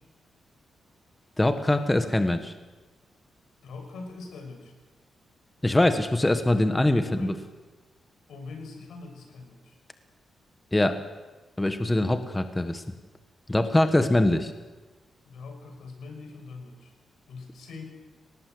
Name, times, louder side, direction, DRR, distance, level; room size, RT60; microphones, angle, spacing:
voice 1, 1.4-2.5 5.6-7.3 10.7-11.0 11.6-12.8 13.5-14.5, left 1 dB, 10° left, 8 dB, 1.5 m, -23 dB
voice 2, 3.6-4.7 7.0-7.4 8.3-9.8 15.2-16.9 17.3-17.8, left 3 dB, 85° left, 4 dB, 6.6 m, -42 dB
30.0 x 19.0 x 8.0 m, 1.3 s
cardioid pair, 120°, 0 cm